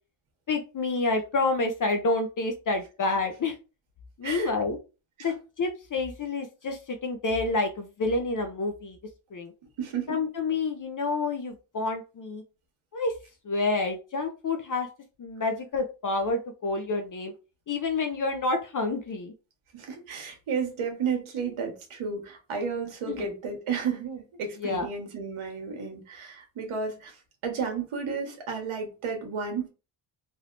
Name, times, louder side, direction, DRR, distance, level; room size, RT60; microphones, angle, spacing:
voice 1, 0.5-3.5 4.2-4.8 5.2-9.0 9.3-9.5 10.1-12.4 12.9-13.1 13.4-14.9 15.2-17.3 17.7-19.3 23.1-23.3 24.6-24.9, left 3 dB, 40° left, 0.6 m, -28 dB
voice 2, 9.8-10.1 19.7-27.2 27.4-29.7, right 5 dB, 80° right, 1.3 m, -32 dB
3.4 x 2.7 x 2.5 m
cardioid pair, 75°, 49 cm